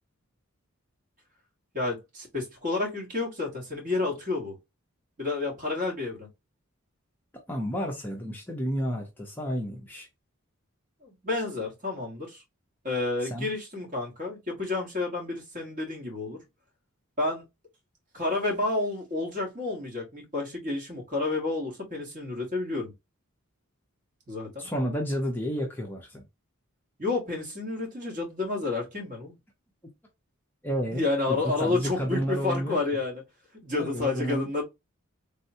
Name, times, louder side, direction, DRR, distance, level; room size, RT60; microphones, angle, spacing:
voice 1, 1.7-4.5 5.2-6.3 11.0-12.4 12.8-16.4 17.2-17.4 18.1-22.9 24.3-24.7 27.0-29.3 30.9-33.2 33.6-34.6, left 3 dB, 35° right, 1.2 m, -30 dB
voice 2, 7.5-10.1 13.2-13.5 24.6-26.2 30.6-32.8 33.8-34.6, equal, 10° left, 0.5 m, -31 dB
3.6 x 2.2 x 2.6 m
head